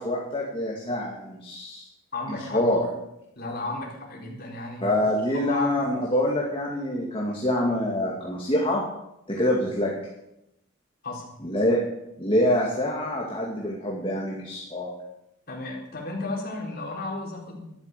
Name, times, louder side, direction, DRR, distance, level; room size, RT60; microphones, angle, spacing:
voice 1, 0.0-1.8 2.3-2.8 4.8-8.8 9.3-9.9 11.4-11.8 12.2-14.9, left 1 dB, 25° left, -3 dB, 2.3 m, -25 dB
voice 2, 2.1-2.9 3.3-5.0 5.3-5.8 11.0-11.3 15.5-17.7, left 2 dB, 45° left, -2 dB, 4.2 m, -33 dB
13.0 x 11.5 x 6.8 m, 0.85 s
head